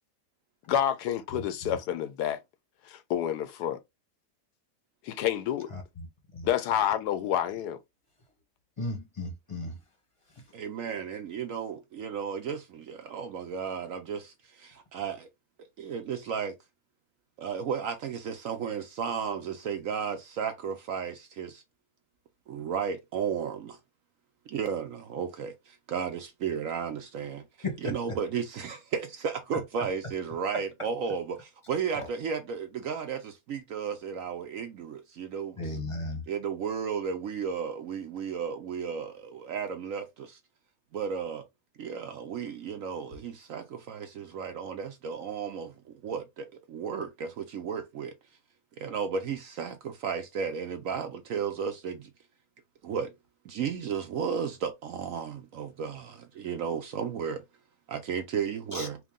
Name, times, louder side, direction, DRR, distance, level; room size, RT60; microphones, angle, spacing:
voice 1, 0.7-2.4 2.9-3.8 5.0-5.7 6.4-7.8, left 10 dB, 75° left, 1.1 m, -28 dB
voice 2, 8.8-9.8 27.6-27.8 35.6-36.2 58.7-58.9, left 2 dB, 25° left, 0.9 m, -34 dB
voice 3, 10.5-15.3 15.8-16.6 17.4-21.6 22.5-23.8 24.5-27.4 27.8-35.8 36.3-40.4 40.9-41.4 41.8-45.7 46.0-48.1 48.8-52.1 52.8-53.1 53.4-57.4 57.9-59.0, right 7 dB, 65° right, 0.9 m, -34 dB
4.7 x 2.2 x 3.6 m
omnidirectional pair, 1.8 m